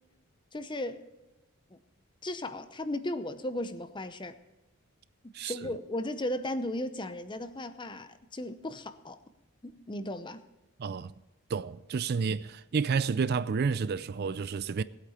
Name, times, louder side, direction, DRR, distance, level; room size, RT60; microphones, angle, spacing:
voice 1, 0.5-1.0 1.7-1.8 2.2-4.3 5.4-9.2 9.6-10.4, left 1 dB, 20° left, 0.7 m, -36 dB
voice 2, 5.3-5.7 10.8-11.1 11.5-14.8, right 5 dB, 50° right, 0.4 m, -30 dB
19.0 x 8.4 x 4.3 m
head